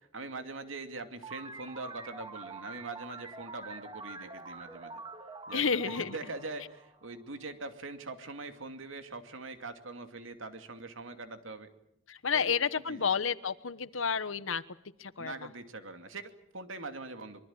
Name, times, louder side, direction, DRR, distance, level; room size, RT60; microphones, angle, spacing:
voice 1, 0.0-5.0 5.5-11.7 12.3-12.6 12.9-13.1 15.2-17.4, right 3 dB, 80° right, 8 dB, 2.5 m, -43 dB
sound 1, 1.2-7.5, right 3 dB, 25° right, 1.9 m, -46 dB
voice 2, 5.5-6.2 12.1-14.6 15.0-15.5, left 6 dB, 85° left, 15 dB, 1.2 m, -31 dB
24.5 x 23.0 x 8.8 m, 0.74 s
head